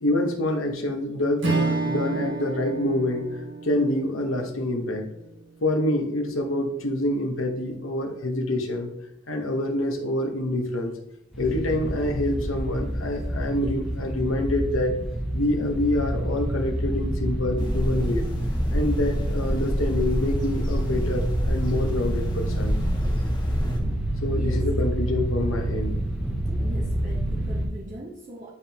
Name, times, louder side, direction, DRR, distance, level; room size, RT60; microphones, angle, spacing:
voice 1, 0.0-5.1 5.6-8.9 9.3-10.9 11.4-15.0 15.3-18.2 18.7-22.8 24.2-26.0, left 1 dB, 70° left, 3 dB, 1.0 m, -26 dB
Strum, 1.4-6.0, right 3 dB, 55° right, 1.2 m, -30 dB
sound 1, 11.3-27.7, right 1 dB, ahead, 1.1 m, -27 dB
sound 2, 17.6-23.8, equal, 20° left, 0.9 m, -30 dB
voice 2, 24.4-24.7 26.6-28.5, right 1 dB, 35° right, -4 dB, 0.9 m, -40 dB
9.8 x 3.7 x 2.8 m, 0.79 s
head